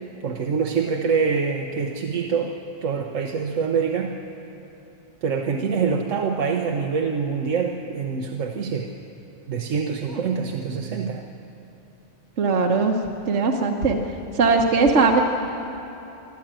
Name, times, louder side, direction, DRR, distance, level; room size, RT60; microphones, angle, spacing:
voice 1, 0.2-2.6 2.8-4.1 5.2-8.9 9.5-11.2, right 5 dB, 90° right, 2 dB, 1.3 m, -25 dB
voice 2, 12.4-13.0 13.3-14.0 14.3-15.2, right 4 dB, 70° right, 1 dB, 1.4 m, -19 dB
25.0 x 13.0 x 8.9 m, 3.0 s
omnidirectional pair, 1.3 m